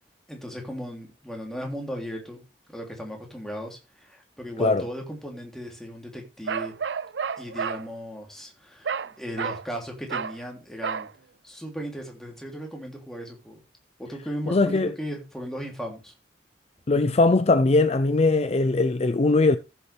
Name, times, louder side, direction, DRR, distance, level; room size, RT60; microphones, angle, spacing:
voice 1, 0.3-2.4 2.7-6.7 7.4-11.1 11.4-13.6 14.0-16.1, equal, 5° left, 2.9 m, -36 dB
Bark, 6.5-7.8 8.9-9.1 9.4-9.7 10.1-10.4 10.8-11.1, right 6 dB, 85° right, 0.5 m, -30 dB
voice 2, 14.5-14.9 16.9-19.6, left 3 dB, 35° left, 0.5 m, -20 dB
14.5 x 7.0 x 3.4 m
head